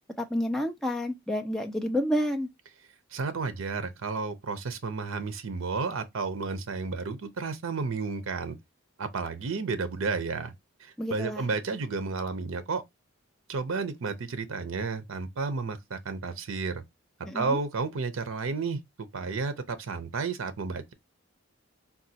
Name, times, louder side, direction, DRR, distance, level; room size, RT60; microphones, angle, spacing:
voice 1, 0.2-2.5 11.0-11.5 17.2-17.6, equal, ahead, 0.5 m, -29 dB
voice 2, 3.1-8.6 9.0-10.5 10.8-12.8 13.5-16.8 17.3-20.9, right 4 dB, 75° right, 0.6 m, -32 dB
3.9 x 2.3 x 2.6 m
head